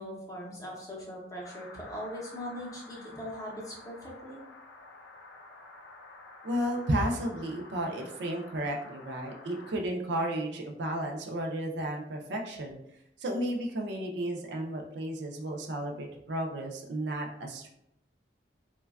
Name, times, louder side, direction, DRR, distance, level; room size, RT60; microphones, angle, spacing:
voice 1, 0.0-4.4, equal, 20° left, -3 dB, 0.6 m, -40 dB
sound 1, 1.4-9.8, left 2 dB, 85° left, 0.5 m, -50 dB
voice 2, 6.4-12.8 13.2-17.7, right 1 dB, 65° right, 2 dB, 0.4 m, -33 dB
3.1 x 2.2 x 2.3 m, 0.78 s
head